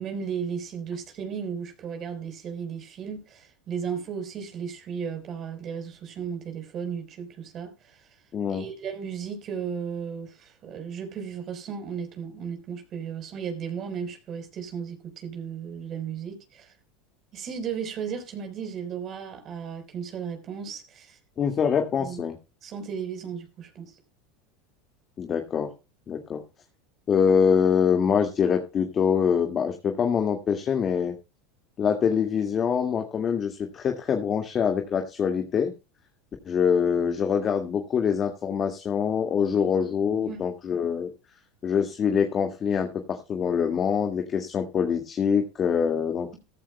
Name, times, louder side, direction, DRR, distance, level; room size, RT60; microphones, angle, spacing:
voice 1, 0.0-8.1 8.5-16.7 17.3-21.2 22.0-22.3 22.6-24.0 39.9-40.0 40.3-40.4, right 7 dB, 45° right, 4.1 m, -35 dB
voice 2, 8.3-8.7 21.4-22.3 25.2-25.7 26.1-26.4 27.1-31.1 31.8-35.7 36.5-41.1 41.6-46.4, left 7 dB, 35° left, 1.9 m, -24 dB
14.5 x 14.0 x 2.2 m
hypercardioid pair, 95°, 0 cm